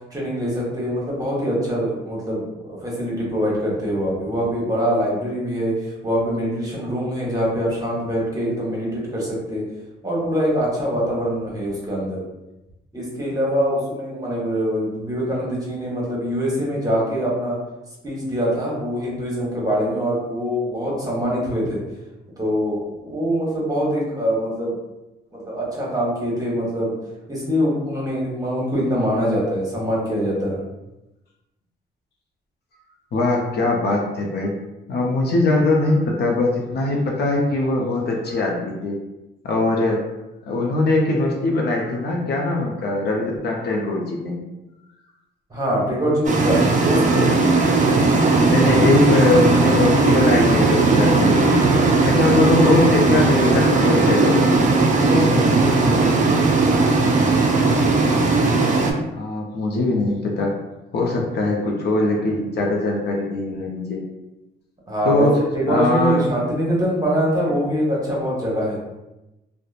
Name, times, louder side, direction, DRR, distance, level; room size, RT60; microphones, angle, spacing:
voice 1, 0.1-9.6 10.0-12.2 12.9-17.6 18.0-21.8 22.4-24.7 25.3-26.9 27.3-30.6 45.5-47.3 55.0-56.3 64.9-65.3 65.5-68.8, equal, 20° right, -5 dB, 1.0 m, -23 dB
voice 2, 33.1-34.5 34.9-39.0 39.4-40.0 40.5-44.4 48.5-54.6 59.1-60.5 60.9-64.0 65.0-65.4 65.7-66.2, left 2 dB, 55° left, -1 dB, 0.6 m, -21 dB
sound 1, 46.2-58.9, right 3 dB, 40° right, 0.4 m, -17 dB
2.8 x 2.1 x 2.4 m, 0.97 s
cardioid pair, 90°, 20 cm